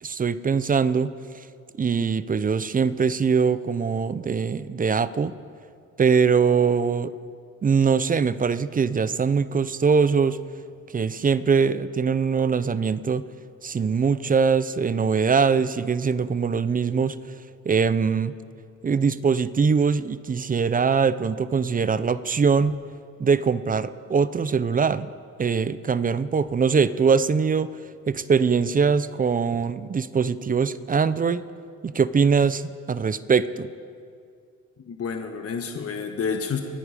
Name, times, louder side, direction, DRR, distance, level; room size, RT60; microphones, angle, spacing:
voice 1, 0.0-1.1 1.8-5.3 6.0-7.1 7.6-10.4 10.9-13.3 13.6-17.2 17.7-18.3 18.8-22.8 23.2-25.1 25.4-27.8 28.1-31.4 31.8-33.7, right 5 dB, 30° right, 15 dB, 0.6 m, -22 dB
voice 2, 34.9-36.6, left 6 dB, 50° left, 4 dB, 1.5 m, -29 dB
28.0 x 9.4 x 5.3 m, 2.3 s
cardioid pair, 90°, 30 cm